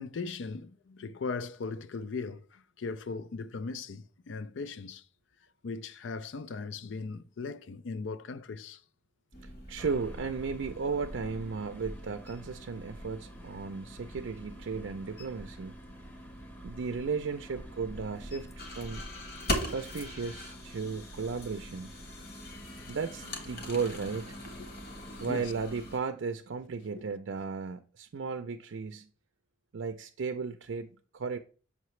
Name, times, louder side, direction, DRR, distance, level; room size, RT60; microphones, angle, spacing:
voice 1, 0.0-5.0 5.6-8.8 22.7-22.9 24.6-25.5, left 4 dB, 75° left, 0.4 m, -39 dB
sound 1, 9.3-26.0, left 1 dB, 50° left, 1.3 m, -42 dB
voice 2, 9.4-15.7 16.6-19.0 19.6-21.9 22.9-24.4 25.2-29.1 29.7-31.4, right 5 dB, 80° right, 0.5 m, -35 dB
sound 2, 9.8-25.3, equal, 10° left, 0.7 m, -53 dB
7.2 x 5.7 x 3.1 m
head